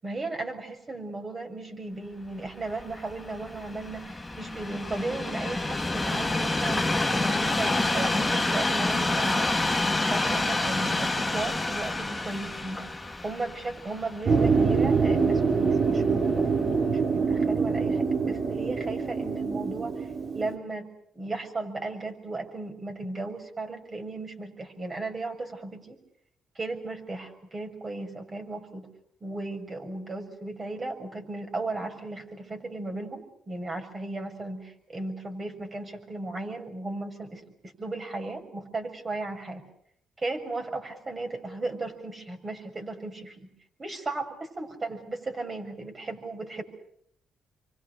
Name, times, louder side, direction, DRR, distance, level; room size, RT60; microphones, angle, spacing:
voice 1, 0.0-12.9 13.2-20.1 20.3-20.9 21.1-26.0 26.5-28.9 29.2-39.6 40.2-43.5 43.8-46.6, right 2 dB, 30° right, 5 dB, 6.8 m, -36 dB
Train, 2.5-15.7 16.4-16.5, left 2 dB, 10° left, 1.7 m, -28 dB
sound 1, 14.3-20.5, right 5 dB, 45° right, 4.7 m, -25 dB
29.0 x 24.5 x 6.5 m, 0.69 s
cardioid pair, 90°, 0 cm